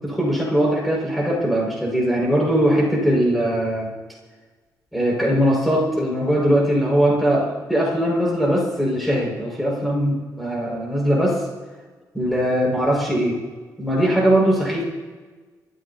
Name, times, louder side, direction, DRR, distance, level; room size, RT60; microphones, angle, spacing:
voice 1, 0.0-3.9 4.9-11.4 12.1-13.4 13.8-14.8, equal, ahead, -5 dB, 5.7 m, -20 dB
29.5 x 14.0 x 2.9 m, 1.4 s
wide cardioid pair, 165°, 7 cm